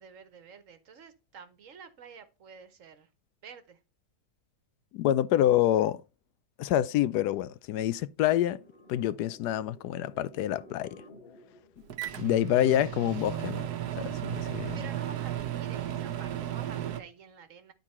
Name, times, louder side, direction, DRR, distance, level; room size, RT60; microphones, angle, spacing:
voice 1, 0.0-3.1 3.4-3.8 14.7-17.7, right 6 dB, 55° right, 1.3 m, -49 dB
voice 2, 4.9-6.0 6.6-8.6 8.9-11.0 12.2-13.7 14.0-14.8, left 12 dB, 90° left, 1.2 m, -27 dB
sound 1, 8.6-13.6, left 1 dB, 35° left, 2.3 m, -54 dB
Microwave oven, 11.9-17.0, right 11 dB, 90° right, 1.4 m, -34 dB
11.5 x 4.0 x 4.2 m
omnidirectional pair, 1.7 m